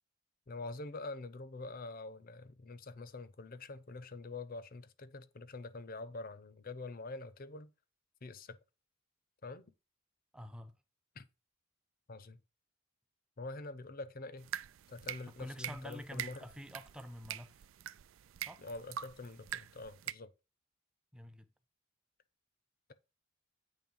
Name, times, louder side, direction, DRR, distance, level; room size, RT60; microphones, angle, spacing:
voice 1, 0.5-7.7 8.2-8.6 9.4-9.6 11.1-11.3 12.1-12.4 13.4-14.5 14.9-16.5 18.6-20.3, left 3 dB, 45° left, 0.6 m, -45 dB
voice 2, 10.3-10.7 15.3-17.7 18.4-18.6 21.1-21.5, equal, 5° right, 0.6 m, -48 dB
sound 1, 14.4-20.1, right 11 dB, 75° right, 0.4 m, -45 dB
8.8 x 3.3 x 5.3 m
head